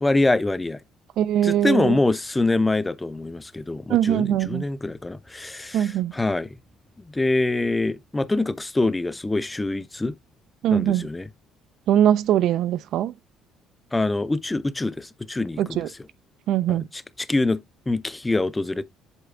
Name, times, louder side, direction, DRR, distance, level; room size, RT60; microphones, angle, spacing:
voice 1, 0.0-0.8 1.4-6.6 7.1-10.1 10.7-11.3 13.9-15.9 16.7-18.8, left 2 dB, 10° left, 0.4 m, -25 dB
voice 2, 1.2-2.0 3.9-4.6 5.7-6.1 10.6-11.1 11.9-13.1 15.6-15.9 16.5-16.8, right 11 dB, 70° right, 0.4 m, -21 dB
8.1 x 6.8 x 2.4 m
cardioid pair, 125°, 0 cm